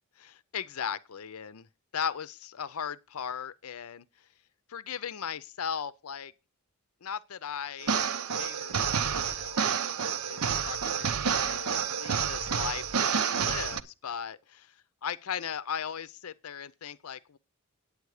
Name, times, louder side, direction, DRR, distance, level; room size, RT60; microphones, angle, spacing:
voice 1, 0.2-1.7 1.9-4.0 4.7-6.3 7.0-8.0 8.4-8.9 9.2-9.6 10.3-14.7 15.0-17.4, left 7 dB, 75° left, 0.6 m, -37 dB
sound 1, 7.8-13.8, right 7 dB, 85° right, 0.8 m, -29 dB
9.6 x 8.6 x 4.8 m
head